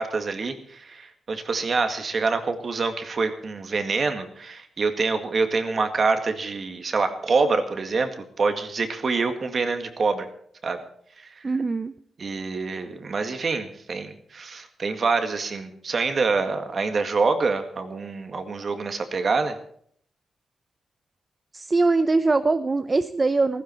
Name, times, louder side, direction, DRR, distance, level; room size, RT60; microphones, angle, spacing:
voice 1, 0.0-8.1 8.4-10.3 10.6-10.8 11.2-11.5 12.2-19.6, right 4 dB, 45° right, 7 dB, 1.9 m, -26 dB
voice 2, 11.4-11.9 21.5-23.6, right 3 dB, 25° right, 11 dB, 0.6 m, -22 dB
15.5 x 15.5 x 4.5 m, 0.64 s
wide cardioid pair, 125°, 0 cm